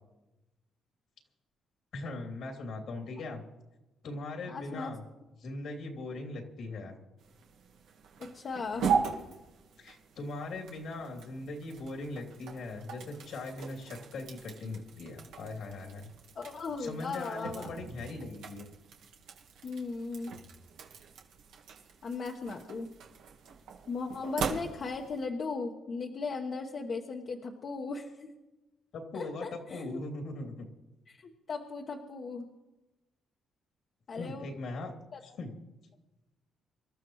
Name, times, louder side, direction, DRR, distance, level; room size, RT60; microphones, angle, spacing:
voice 1, 1.9-3.4 4.0-5.0 5.4-6.9 9.8-16.1 16.8-18.7 28.9-30.7 34.1-34.9 35.2-35.5, left 2 dB, 70° left, 2 dB, 3.0 m, -40 dB
voice 2, 4.5-4.9 8.2-8.9 16.3-17.7 19.6-20.3 22.0-22.9 23.9-28.3 29.1-30.0 31.1-32.5 34.1-34.5 35.1-35.2, left 4 dB, 50° left, 1 dB, 1.3 m, -37 dB
sound 1, 7.2-25.2, right 6 dB, 85° right, 1.6 m, -39 dB
26.0 x 13.0 x 3.2 m, 1.0 s
cardioid pair, 90°, 0 cm